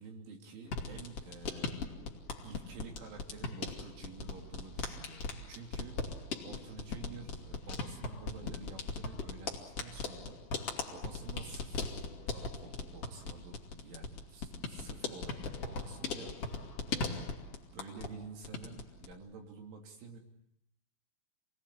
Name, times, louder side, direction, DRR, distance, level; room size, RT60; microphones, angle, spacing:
voice 1, 0.0-2.0 2.4-6.0 6.4-10.4 10.9-17.3 17.7-20.2, right 4 dB, 70° right, 3 dB, 5.2 m, -50 dB
sound 1, 0.6-18.2 18.4-19.1, left 4 dB, 40° left, 2.3 m, -39 dB
29.0 x 20.0 x 8.4 m, 0.73 s
omnidirectional pair, 5.8 m